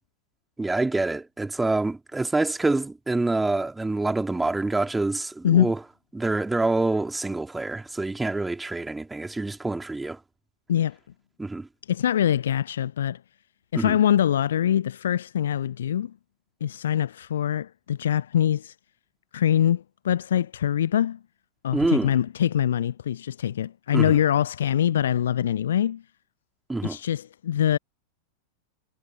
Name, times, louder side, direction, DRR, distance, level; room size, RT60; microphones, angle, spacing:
voice 1, 0.6-5.8 6.1-10.2 11.4-11.7 13.7-14.0 21.7-22.1 23.9-24.2 26.7-27.0, right 2 dB, 10° right, 3.2 m, -26 dB
voice 2, 11.9-13.2 13.7-16.1 16.6-18.8 19.3-21.2 21.6-26.0 26.8-27.8, left 10 dB, 65° left, 0.7 m, -23 dB
figure-of-eight pair, 90°, 0 cm